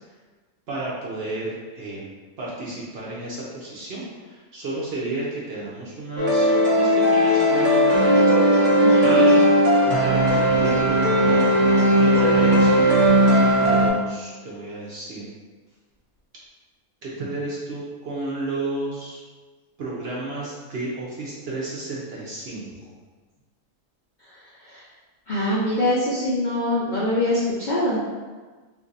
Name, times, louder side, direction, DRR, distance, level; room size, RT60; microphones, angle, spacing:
voice 1, 0.7-2.1 2.4-8.1 9.0-9.4 9.9-11.5 12.0-15.3 17.0-19.2 19.8-22.9, right 2 dB, 60° right, -5 dB, 0.7 m, -32 dB
sound 1, 6.2-13.9, equal, 85° right, 0.3 m, -17 dB
voice 2, 8.8-9.2 24.6-24.8 25.3-28.0, left 1 dB, 80° left, -7 dB, 0.4 m, -24 dB
2.6 x 2.5 x 3.8 m, 1.3 s
omnidirectional pair, 1.6 m